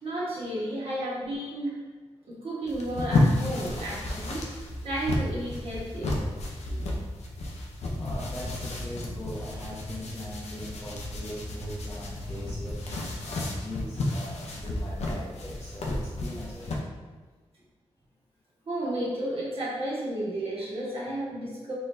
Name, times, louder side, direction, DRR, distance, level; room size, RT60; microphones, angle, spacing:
voice 1, 0.0-1.7 2.4-4.4 4.8-6.2 18.7-21.7, right 1 dB, 60° right, -6 dB, 1.4 m, -32 dB
sound 1, 2.7-16.8, left 2 dB, 90° left, 0.6 m, -32 dB
sound 2, 7.8-13.6, left 1 dB, 20° right, 1.1 m, -39 dB
voice 2, 8.0-12.8 13.3-16.9 20.8-20.9, left 1 dB, 25° left, -7 dB, 0.6 m, -41 dB
4.1 x 3.2 x 2.6 m, 1.3 s
wide cardioid pair, 105°, 11 cm